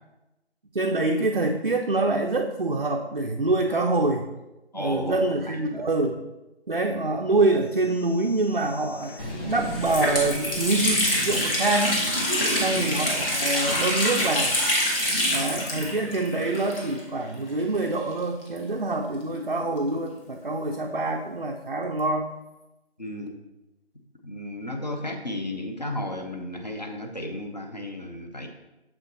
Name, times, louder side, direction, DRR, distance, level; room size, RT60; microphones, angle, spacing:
voice 1, 0.7-4.3 4.7-6.2 6.7-12.0 12.6-14.6 15.3-22.3, right 2 dB, 50° right, 1 dB, 0.4 m, -25 dB
voice 2, 4.7-5.2 5.5-5.6 12.6-12.9 23.0-23.4 24.2-28.5, left 1 dB, 40° left, 4 dB, 0.7 m, -34 dB
sound 1, 7.6-11.9, equal, 90° left, 2.3 m, -39 dB
Water tap faucet, 9.0-9.1 9.5-17.2 17.5-17.6 18.4-20.0, equal, 55° left, 2.1 m, -26 dB
6.9 x 5.5 x 3.0 m, 1.0 s
figure-of-eight pair, 170°, 34 cm